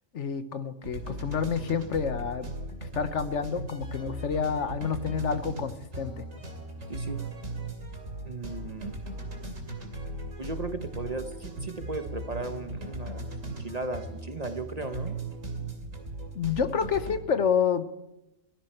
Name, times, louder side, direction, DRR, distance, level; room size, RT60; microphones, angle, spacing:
voice 1, 0.1-2.5 2.9-6.3 16.3-17.9, left 6 dB, 65° left, 11 dB, 1.3 m, -28 dB
sound 1, 0.8-17.2, right 1 dB, 80° right, 3.2 m, -38 dB
voice 2, 6.9-7.2 8.2-9.0 10.4-15.2, right 3 dB, 35° right, 8 dB, 1.0 m, -36 dB
17.0 x 15.5 x 4.4 m, 0.93 s
omnidirectional pair, 1.3 m